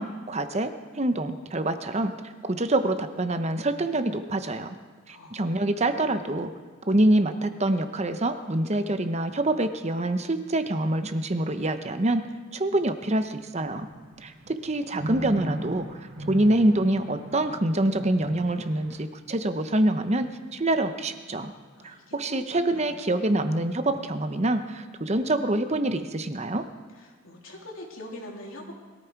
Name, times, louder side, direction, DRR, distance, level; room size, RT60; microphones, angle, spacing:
voice 1, 0.0-2.1 2.4-4.8 5.1-6.5 6.9-12.2 12.5-13.9 14.2-21.5 21.8-26.6, right 1 dB, 35° right, 9 dB, 0.9 m, -26 dB
voice 2, 5.1-5.7 21.8-22.4 22.7-23.1 26.9-28.7, left 1 dB, 85° left, -1 dB, 3.2 m, -43 dB
sound 1, 13.6-19.0, right 1 dB, 60° right, 2.1 m, -38 dB
21.5 x 14.0 x 4.7 m, 1.5 s
head